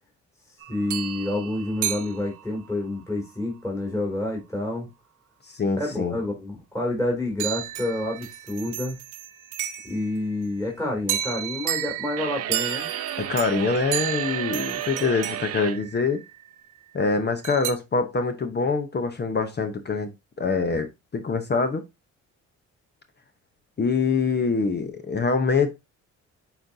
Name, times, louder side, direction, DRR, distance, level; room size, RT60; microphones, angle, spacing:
sound 1, 0.6-2.8 7.4-10.2 11.1-16.4 17.4-17.7, right 12 dB, 85° right, 0.9 m, -32 dB
voice 1, 0.7-4.9 5.8-9.0 9.8-12.9, left 1 dB, 10° left, 2.8 m, -28 dB
voice 2, 5.5-6.2 13.2-16.2 16.9-20.1 20.4-21.8 23.8-25.7, left 4 dB, 35° left, 0.9 m, -24 dB
sound 2, 12.2-15.8, right 11 dB, 55° right, 0.6 m, -33 dB
8.4 x 4.1 x 2.7 m
cardioid pair, 90°, 30 cm